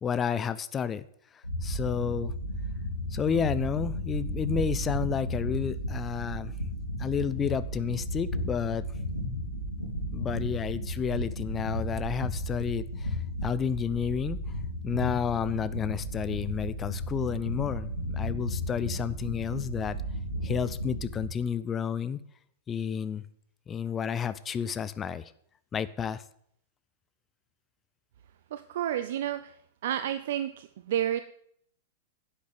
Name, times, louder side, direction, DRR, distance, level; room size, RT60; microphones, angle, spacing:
voice 1, 0.0-1.0 1.6-2.3 3.1-6.5 7.0-8.8 10.1-13.2 13.4-14.4 14.8-20.0 20.4-22.2 22.7-23.2 23.7-25.3 25.7-26.2, left 7 dB, 20° left, 15 dB, 0.8 m, -31 dB
sound 1, 1.4-21.3, equal, 80° left, 3.9 m, -34 dB
voice 2, 28.5-29.6 29.8-31.2, right 11 dB, 55° right, 11 dB, 0.7 m, -30 dB
11.0 x 8.3 x 9.5 m, 0.66 s
figure-of-eight pair, 100°, 0 cm